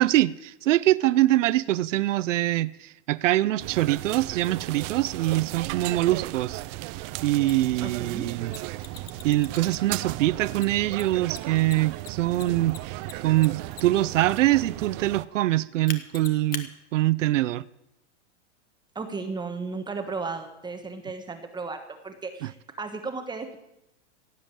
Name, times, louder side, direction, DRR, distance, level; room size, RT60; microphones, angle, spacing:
voice 1, 0.0-6.6 6.9-8.5 9.2-13.0 13.2-17.6 22.4-22.5, right 15 dB, 85° right, 0.6 m, -24 dB
sound 1, 3.6-15.3, right 19 dB, 30° right, 0.4 m, -36 dB
Mechanisms, 7.5-7.6 8.5-10.0 10.5-14.1 15.9-16.6, left 8 dB, 25° left, 1.3 m, -40 dB
voice 2, 7.8-8.3 18.9-23.6, right 4 dB, 10° right, 1.2 m, -35 dB
16.5 x 7.7 x 9.0 m
supercardioid pair, 140°, 36 cm